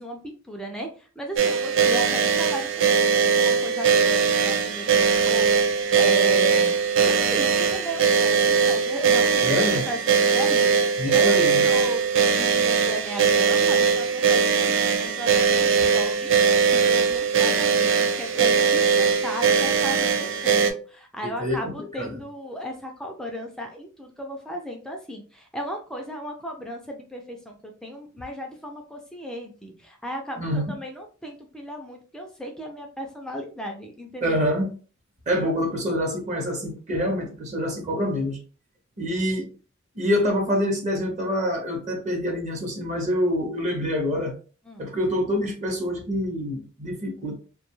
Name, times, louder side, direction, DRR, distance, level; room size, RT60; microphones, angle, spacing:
voice 1, 0.0-6.7 7.1-34.4 37.8-38.0 44.6-44.8, equal, 5° left, 2 dB, 0.3 m, -35 dB
sound 1, 1.4-20.7, right 6 dB, 65° right, 0.4 m, -20 dB
voice 2, 9.4-9.8 11.0-11.6 21.2-21.7 22.0-22.1 30.4-30.7 34.2-34.7 35.3-38.4 39.0-39.5 39.9-44.3 44.8-47.4, equal, 35° right, 1 dB, 0.7 m, -26 dB
2.6 x 2.2 x 3.0 m, 0.38 s
head